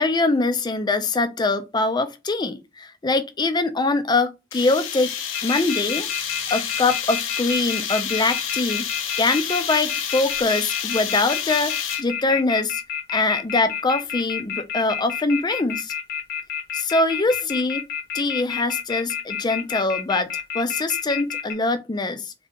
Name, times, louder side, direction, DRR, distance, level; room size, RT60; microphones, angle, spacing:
voice 1, 0.0-5.1 5.4-6.1 6.5-8.9 9.2-12.8 13.1-15.9 16.7-17.8 18.1-22.3, left 3 dB, 20° left, 0.4 m, -23 dB
sound 1, 4.5-12.2, left 8 dB, 90° left, 0.8 m, -29 dB
sound 2, 5.3-21.5, left 8 dB, 55° left, 0.8 m, -29 dB
3.6 x 2.8 x 3.5 m
head